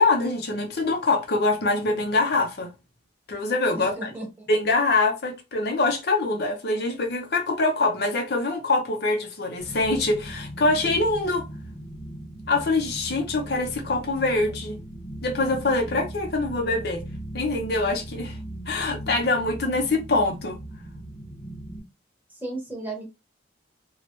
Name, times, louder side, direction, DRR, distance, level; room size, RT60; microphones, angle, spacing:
voice 1, 0.0-2.7 3.3-4.1 4.5-11.4 12.5-14.8 15.2-17.0 17.3-18.4 18.7-20.6, left 2 dB, 55° left, 0.6 m, -24 dB
voice 2, 3.7-4.5 22.3-23.1, right 2 dB, 10° right, 0.9 m, -35 dB
sound 1, 9.6-21.8, right 1 dB, 25° left, 0.9 m, -38 dB
3.0 x 2.2 x 2.9 m
head